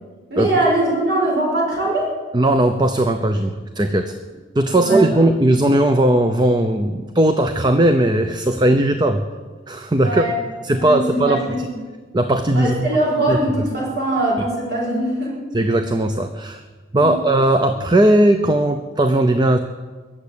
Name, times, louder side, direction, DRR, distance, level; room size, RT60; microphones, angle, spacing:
voice 1, 0.3-2.1 4.7-5.2 10.0-10.3 10.7-11.7 12.5-15.3 17.0-17.2, right 1 dB, 60° right, -4 dB, 5.7 m, -21 dB
voice 2, 2.3-4.1 4.5-9.2 9.7-10.3 10.6-11.7 12.1-12.9 13.3-13.4 15.5-16.6 16.9-19.6, right 1 dB, 25° right, 8 dB, 0.6 m, -17 dB
22.0 x 7.4 x 8.3 m, 1.4 s
head